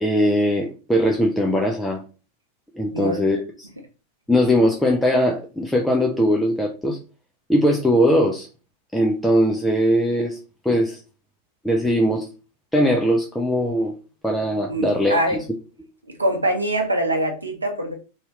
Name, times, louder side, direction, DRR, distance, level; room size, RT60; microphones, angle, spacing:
voice 1, 0.0-2.0 2.7-3.7 4.3-7.0 7.5-8.5 8.9-10.4 10.6-11.0 11.6-12.3 12.7-13.9 14.2-15.2, equal, 5° left, -1 dB, 0.4 m, -20 dB
voice 2, 2.9-3.2 14.7-15.4 16.2-17.9, right 1 dB, 80° right, 4 dB, 0.6 m, -23 dB
2.7 x 2.3 x 2.9 m, 0.34 s
figure-of-eight pair, 90°, 0 cm